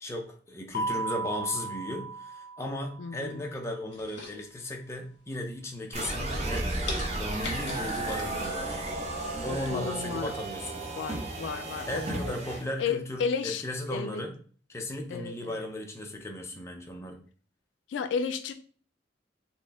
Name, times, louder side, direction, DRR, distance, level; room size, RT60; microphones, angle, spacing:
voice 1, 0.0-6.7 7.2-8.8 9.4-10.9 11.9-14.4 14.7-17.2, left 1 dB, 15° left, 1 dB, 0.6 m, -36 dB
Keyboard (musical), 0.7-3.3, right 3 dB, 45° left, 1.0 m, -35 dB
voice 2, 3.0-3.4 9.4-10.3 11.0-12.3 12.8-13.6 13.9-14.2 15.1-15.6 17.9-18.5, left 6 dB, 80° left, 9 dB, 0.3 m, -33 dB
sound 1, 3.9-4.9 5.4-5.8 6.2-6.3 6.9-8.5 8.9-9.0, left 3 dB, 65° left, 1.3 m, -40 dB
sound 2, 5.9-12.6, right 2 dB, 35° right, 0.7 m, -33 dB
4.2 x 2.1 x 3.4 m, 0.41 s
head